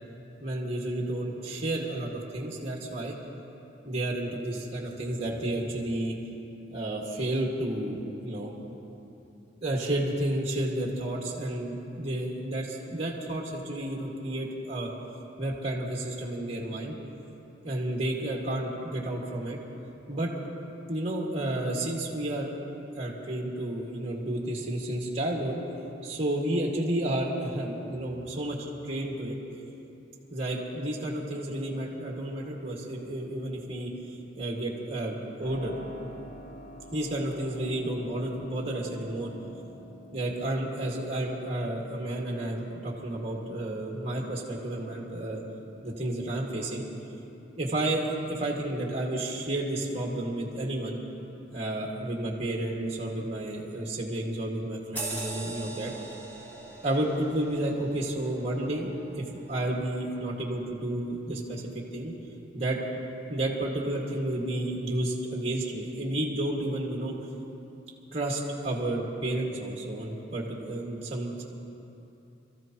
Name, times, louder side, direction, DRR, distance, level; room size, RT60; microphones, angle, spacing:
voice 1, 0.4-3.1 3.8-6.2 6.7-8.5 9.6-14.9 15.4-17.0 17.6-19.6 20.1-20.3 20.9-22.5 23.0-25.6 26.0-29.4 30.3-35.7 36.9-39.3 40.1-45.4 45.8-46.8 47.6-51.0 51.5-55.9 56.8-61.6 61.9-62.1 62.5-62.8 63.3-67.1 68.1-71.4, right 1 dB, 30° right, -2 dB, 2.0 m, -31 dB
Keyboard (musical), 35.4-48.1, left 1 dB, 75° left, 2.8 m, -50 dB
sound 1, 55.0-59.9 60.3-60.5, right 2 dB, 10° left, 3.2 m, -41 dB
28.0 x 14.5 x 3.0 m, 2.9 s
head